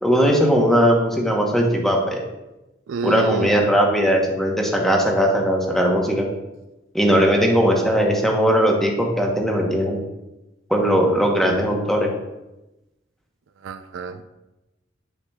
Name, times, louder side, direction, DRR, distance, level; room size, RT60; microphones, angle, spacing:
voice 1, 0.0-2.2 3.0-6.3 6.9-10.0 10.7-12.1, equal, ahead, 0 dB, 0.9 m, -19 dB
voice 2, 2.9-3.5 13.6-14.2, right 4 dB, 80° right, 10 dB, 0.4 m, -28 dB
7.1 x 6.7 x 2.3 m, 0.99 s
head